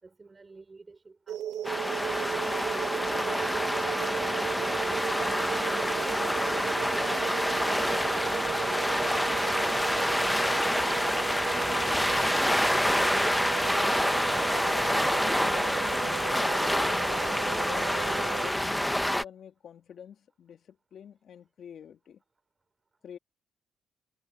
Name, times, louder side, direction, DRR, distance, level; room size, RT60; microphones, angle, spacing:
voice 1, 0.0-7.1 8.3-12.9, right 3 dB, 25° right, 5.1 m, -54 dB
sound 1, 1.3-18.5, right 11 dB, 80° right, 1.1 m, -36 dB
sound 2, 1.6-19.2, equal, 5° left, 1.0 m, -27 dB
voice 2, 14.6-22.2 23.0-23.2, left 8 dB, 60° left, 2.7 m, -47 dB
cardioid pair, 90°, 0 cm